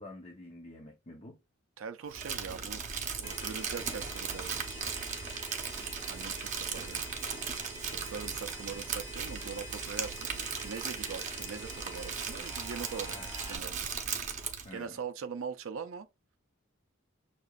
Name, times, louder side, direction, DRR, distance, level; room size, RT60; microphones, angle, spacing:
voice 1, 0.0-1.4 13.1-13.3 14.6-15.0, left 1 dB, 30° left, 0.7 m, -48 dB
voice 2, 1.8-2.8 3.2-4.8 6.1-7.0 7.9-13.2 13.5-13.9 14.7-16.1, right 6 dB, 70° right, 0.4 m, -42 dB
Crumpling crinkling, 2.1-14.7, right 6 dB, 35° right, 0.7 m, -38 dB
sound 1, 3.2-13.6, right 1 dB, 10° right, 1.8 m, -45 dB
6.6 x 2.9 x 2.4 m
head